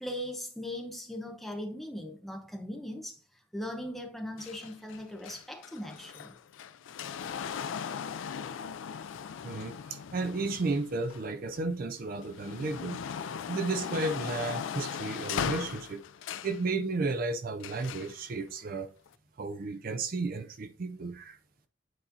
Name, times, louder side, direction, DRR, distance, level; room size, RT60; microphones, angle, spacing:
voice 1, 0.0-3.2 3.5-6.4, left 1 dB, ahead, 0.8 m, -39 dB
sound 1, 4.4-11.6 12.1-16.6 17.6-18.2 19.1-19.2, left 7 dB, 85° left, 0.4 m, -38 dB
voice 2, 9.4-13.0 13.5-16.0 16.4-18.9 19.4-21.4, right 3 dB, 45° right, 0.4 m, -33 dB
9.1 x 4.2 x 2.6 m
head